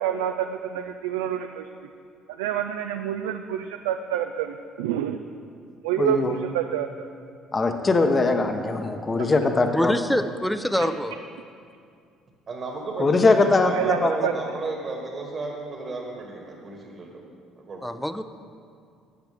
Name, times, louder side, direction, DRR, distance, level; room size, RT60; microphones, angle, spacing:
voice 1, 0.0-1.7 2.3-5.2 5.8-7.1 9.2-9.3 10.8-10.9 13.6-14.3, right 10 dB, 85° right, 7 dB, 0.3 m, -28 dB
voice 2, 6.0-6.3 7.5-9.9 13.0-14.3, left 3 dB, 30° left, 6 dB, 0.9 m, -21 dB
voice 3, 9.7-11.1 17.8-18.2, equal, 5° left, 10 dB, 0.6 m, -25 dB
voice 4, 12.5-17.2 17.6-18.0, right 3 dB, 45° right, 0 dB, 1.6 m, -34 dB
12.5 x 8.0 x 3.5 m, 2.3 s
hypercardioid pair, 65°, 0 cm